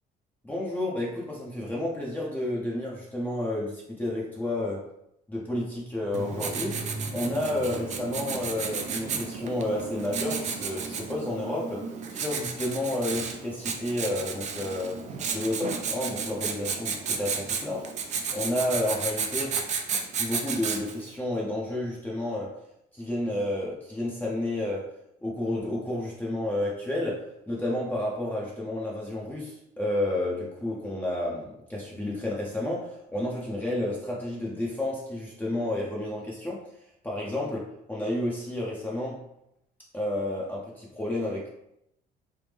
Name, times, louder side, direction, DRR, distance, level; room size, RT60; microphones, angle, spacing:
voice 1, 0.4-4.8 5.3-6.8 7.1-15.0 15.3-17.9 18.3-19.6 20.2-22.6 22.9-24.9 25.2-36.6 37.0-39.2 39.9-41.5, left 1 dB, 10° left, -4 dB, 0.6 m, -31 dB
Writing, 6.1-21.1, right 5 dB, 45° right, 0.4 m, -33 dB
3.3 x 2.0 x 3.4 m, 0.79 s
cardioid pair, 110°, 17 cm